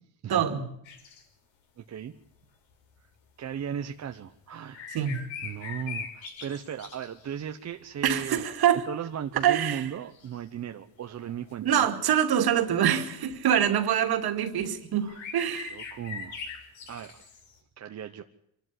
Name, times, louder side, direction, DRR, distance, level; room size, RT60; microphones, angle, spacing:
voice 1, 0.3-0.7 4.9-5.2 8.0-8.8 9.4-9.9 11.6-15.8, right 9 dB, 50° right, 2.5 m, -25 dB
sound 1, 0.9-1.2 3.3-3.4 4.1-4.2 4.7-7.5 8.2-8.6 9.1-9.2 10.1-10.6 11.2-11.5 13.4-13.6 14.7-14.8 15.0-17.6, left 6 dB, 65° left, 5.8 m, -41 dB
voice 2, 1.8-2.1 3.4-4.9 5.4-8.5 8.9-11.9 15.0-15.2 15.7-16.5 16.9-17.3 17.8-18.2, right 8 dB, 35° right, 0.9 m, -37 dB
25.5 x 12.5 x 9.9 m
cardioid pair, 140°, 49 cm